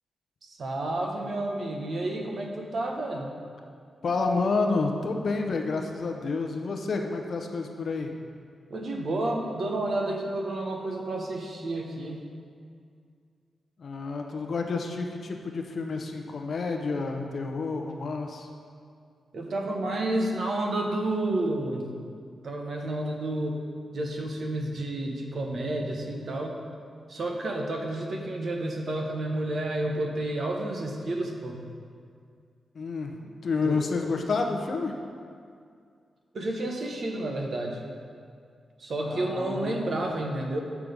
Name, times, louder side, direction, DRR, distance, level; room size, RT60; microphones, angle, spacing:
voice 1, 0.4-3.4 8.7-12.2 19.3-21.9 22.4-23.6 23.9-26.6 27.1-31.6 33.6-33.8 36.3-37.8 38.8-40.6, right 1 dB, 55° right, 1 dB, 0.9 m, -30 dB
voice 2, 4.0-8.1 13.8-18.5 32.7-35.0 39.1-40.0, left 3 dB, 55° left, 3 dB, 0.7 m, -29 dB
6.8 x 6.1 x 5.1 m, 2.2 s
wide cardioid pair, 120°, 0 cm